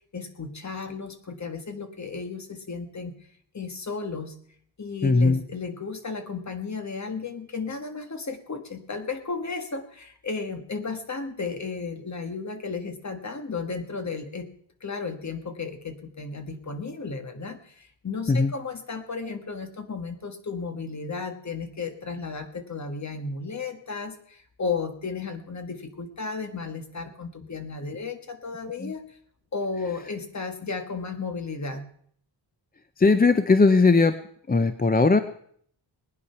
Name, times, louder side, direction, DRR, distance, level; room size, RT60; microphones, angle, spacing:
voice 1, 0.1-3.1 3.5-4.4 4.8-14.5 14.8-29.0 29.5-31.9, left 4 dB, 35° left, 7 dB, 1.6 m, -34 dB
voice 2, 5.0-5.4 18.3-18.5 28.8-28.9 33.0-34.2 34.5-35.2, left 3 dB, 20° left, 10 dB, 0.5 m, -19 dB
19.5 x 9.8 x 5.7 m, 0.63 s
wide cardioid pair, 150°, 47 cm